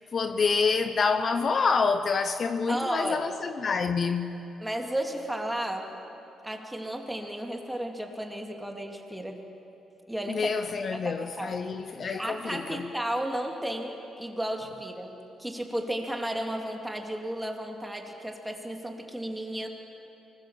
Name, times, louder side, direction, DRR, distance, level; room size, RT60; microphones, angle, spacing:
voice 1, 0.1-4.4 10.3-12.8, left 5 dB, 45° left, 0.8 m, -27 dB
voice 2, 2.7-3.2 4.6-5.9 6.4-9.4 10.1-10.5 10.9-11.6 12.2-19.7, right 1 dB, 5° right, 2.8 m, -33 dB
24.0 x 20.5 x 7.6 m
cardioid pair, 90°, 0 cm